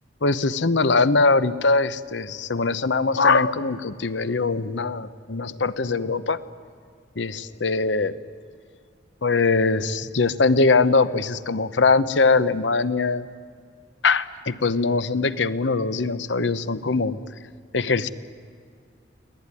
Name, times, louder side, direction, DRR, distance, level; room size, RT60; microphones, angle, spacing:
voice 1, 0.2-6.4 7.2-8.1 9.2-13.3 14.0-17.2 17.7-18.1, left 3 dB, 80° left, 15 dB, 0.9 m, -22 dB
24.0 x 18.0 x 9.8 m, 2.2 s
head